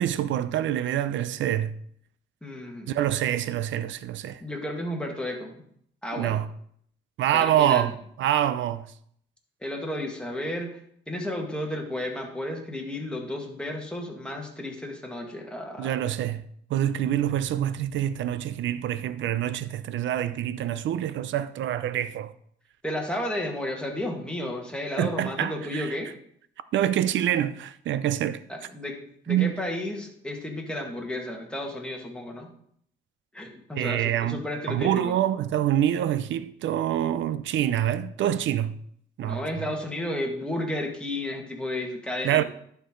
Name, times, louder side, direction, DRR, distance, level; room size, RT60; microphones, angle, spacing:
voice 1, 0.0-1.7 2.9-4.4 6.1-6.5 7.2-8.9 15.8-16.4 16.7-22.3 25.0-25.9 26.7-28.4 29.3-29.6 33.7-34.4 34.7-38.8 39.2-39.5 42.2-42.4, right 11 dB, 70° right, 0.5 m, -26 dB
voice 2, 2.4-3.0 4.4-5.6 6.0-6.4 7.3-7.9 9.6-10.8 11.1-15.9 22.8-26.1 28.5-29.0 29.3-32.5 33.3-35.2 39.2-42.4, left 1 dB, 5° left, 1.8 m, -32 dB
11.0 x 4.7 x 3.8 m
cardioid pair, 90°, 20 cm